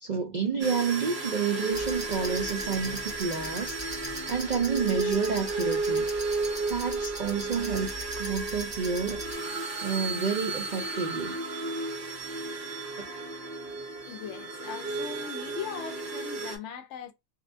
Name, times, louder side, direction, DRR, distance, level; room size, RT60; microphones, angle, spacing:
voice 1, 0.0-3.7 4.3-6.1 6.7-7.9 8.2-9.2 9.8-11.4, right 5 dB, 65° right, 0.4 m, -29 dB
sound 1, 0.6-16.6, right 3 dB, 45° right, 0.8 m, -33 dB
sound 2, 1.7-9.3, equal, 20° right, 0.8 m, -41 dB
voice 2, 14.1-17.1, left 7 dB, 70° left, 0.9 m, -40 dB
2.7 x 2.1 x 2.5 m
omnidirectional pair, 1.4 m